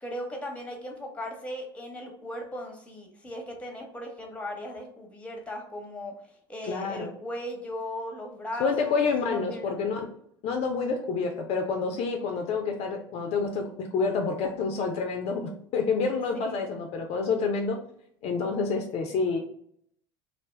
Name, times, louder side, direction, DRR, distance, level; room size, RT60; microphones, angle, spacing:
voice 1, 0.0-6.1 6.5-9.7 16.4-16.6, left 1 dB, 10° left, 2 dB, 0.9 m, -37 dB
voice 2, 6.6-7.1 8.6-10.0 10.4-17.8 18.2-19.4, left 4 dB, 50° left, 3 dB, 0.4 m, -28 dB
2.5 x 2.2 x 3.2 m, 0.68 s
hypercardioid pair, 80°, 13 cm